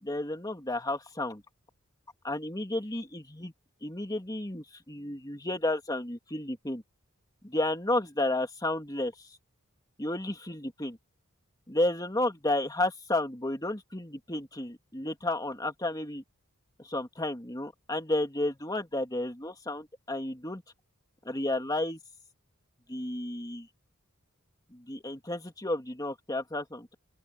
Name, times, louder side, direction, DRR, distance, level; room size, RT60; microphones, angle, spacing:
voice 1, 0.0-1.4 2.2-3.5 3.8-6.8 7.4-9.1 10.0-11.0 11.7-16.2 16.8-20.6 21.2-22.0 22.9-23.7 24.7-26.9, left 1 dB, 15° left, 2.8 m, -32 dB
open air
head